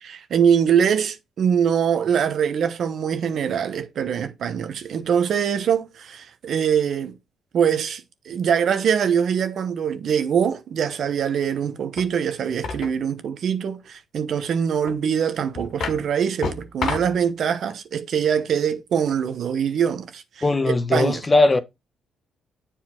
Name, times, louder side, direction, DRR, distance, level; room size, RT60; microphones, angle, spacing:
voice 1, 0.0-7.2 7.5-21.2, right 8 dB, 65° right, 1.0 m, -23 dB
sound 1, 12.0-12.1 12.6-13.0 14.9-15.0 15.5-16.0 16.4-17.2, left 4 dB, 65° left, 2.4 m, -29 dB
voice 2, 20.4-21.6, left 2 dB, 25° left, 0.9 m, -19 dB
7.5 x 4.3 x 4.4 m
cardioid pair, 90°, 0 cm